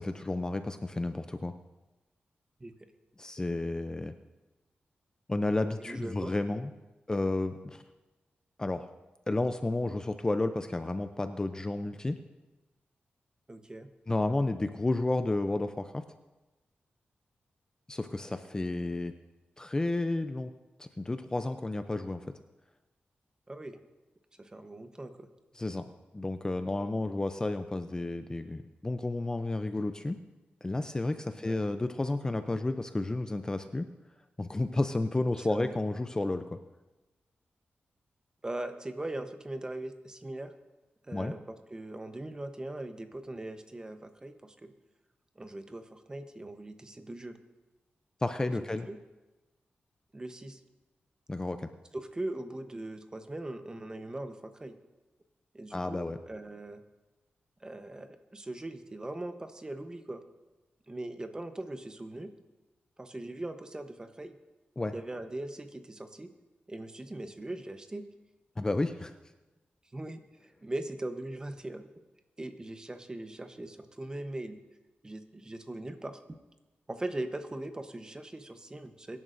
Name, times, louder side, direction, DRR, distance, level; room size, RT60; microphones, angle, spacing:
voice 1, 0.0-1.5 3.2-4.2 5.3-6.7 7.1-7.8 8.6-8.9 9.3-12.2 14.1-16.0 17.9-19.1 19.6-20.5 20.8-22.2 25.6-25.9 26.1-30.2 30.6-33.9 34.4-36.6 41.1-41.3 48.2-48.9 51.3-51.7 55.7-56.2 64.8-64.9 68.6-69.1, left 2 dB, 20° left, 9 dB, 0.4 m, -31 dB
voice 2, 5.8-6.3 13.5-13.9 23.5-23.8 24.4-25.3 31.4-31.6 35.4-35.7 38.4-40.5 41.1-44.7 45.4-47.4 48.9-49.0 50.1-50.6 51.9-54.8 55.5-56.8 57.6-60.2 60.9-62.3 63.0-64.4 64.9-66.3 66.7-68.0 69.9-70.2 70.6-71.9 72.4-74.6 75.0-76.2 76.9-79.2, right 1 dB, 20° right, 8 dB, 0.9 m, -40 dB
23.5 x 11.0 x 2.6 m, 1.1 s
wide cardioid pair, 120°, 4 cm